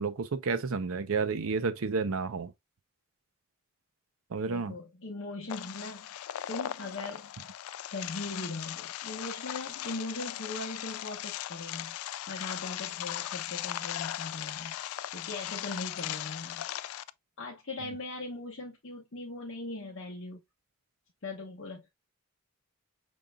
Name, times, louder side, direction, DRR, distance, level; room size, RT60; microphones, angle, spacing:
voice 1, 0.0-2.5 4.3-4.8, right 4 dB, 75° right, 0.6 m, -31 dB
voice 2, 4.5-7.3 7.9-14.8 15.1-16.7 17.4-20.4 21.2-21.8, left 2 dB, 60° left, 1.1 m, -40 dB
sound 1, 5.5-17.1, left 12 dB, 80° left, 0.3 m, -38 dB
5.3 x 3.8 x 2.3 m
head